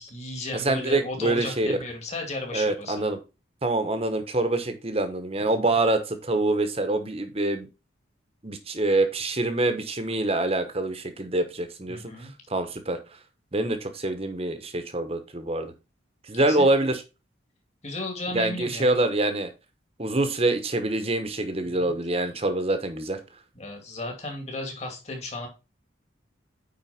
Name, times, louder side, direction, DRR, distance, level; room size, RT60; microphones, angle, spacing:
voice 1, 0.0-3.0 5.5-5.6 11.9-12.3 16.3-16.7 17.8-18.9 21.6-21.9 23.5-25.5, left 2 dB, 35° left, 2.6 m, -35 dB
voice 2, 0.5-1.8 2.5-3.2 3.6-7.7 8.4-13.0 13.5-15.7 16.3-17.0 18.3-19.5 20.0-23.2, right 2 dB, 30° right, 1.2 m, -25 dB
9.4 x 4.4 x 4.3 m
head